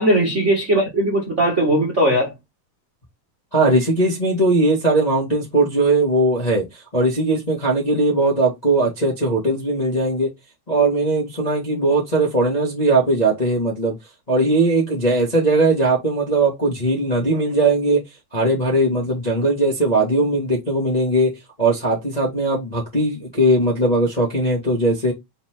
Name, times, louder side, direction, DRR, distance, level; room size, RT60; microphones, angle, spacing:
voice 1, 0.0-2.3, right 1 dB, 30° right, 1.6 m, -18 dB
voice 2, 3.5-6.6 6.9-10.3 10.7-13.9 14.3-18.0 18.3-25.1, right 2 dB, 15° left, 1.6 m, -19 dB
5.1 x 4.4 x 4.5 m
omnidirectional pair, 3.5 m